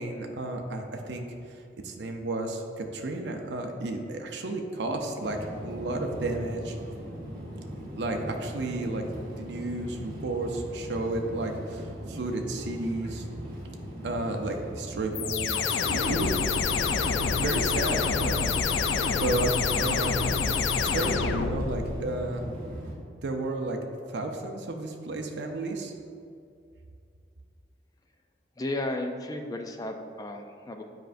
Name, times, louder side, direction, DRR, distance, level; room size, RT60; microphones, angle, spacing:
voice 1, 0.0-1.6 1.8-5.4 5.6-6.8 8.0-9.0 9.4-13.2 14.0-16.4 17.3-18.5 19.2-22.5 23.1-23.8 24.1-25.9, right 2 dB, 75° right, 3 dB, 0.5 m, -32 dB
sound 1, 5.2-22.9, equal, 50° right, 1.1 m, -39 dB
sound 2, 15.1-22.0, left 5 dB, 90° left, 0.4 m, -27 dB
voice 2, 28.6-30.8, left 1 dB, 20° left, 4 dB, 0.3 m, -34 dB
7.7 x 5.1 x 2.5 m, 2.4 s
head